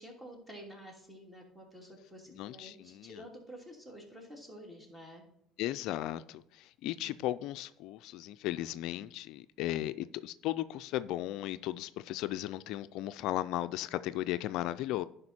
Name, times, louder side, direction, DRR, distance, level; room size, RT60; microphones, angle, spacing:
voice 1, 0.0-5.2, equal, 15° right, 1 dB, 2.9 m, -50 dB
voice 2, 2.3-3.2 5.6-15.0, left 14 dB, 70° left, 13 dB, 0.3 m, -36 dB
10.5 x 5.2 x 4.2 m, 0.73 s
supercardioid pair, 80°, 0 cm